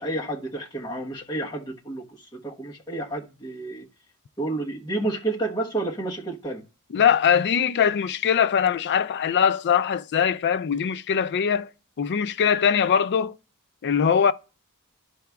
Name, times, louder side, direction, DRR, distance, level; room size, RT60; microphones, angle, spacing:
voice 1, 0.0-3.9 4.4-6.6, right 2 dB, 20° left, 1.1 m, -30 dB
voice 2, 6.9-11.7 12.0-13.4 13.8-14.3, left 7 dB, 50° left, 0.4 m, -21 dB
13.5 x 4.7 x 2.3 m
head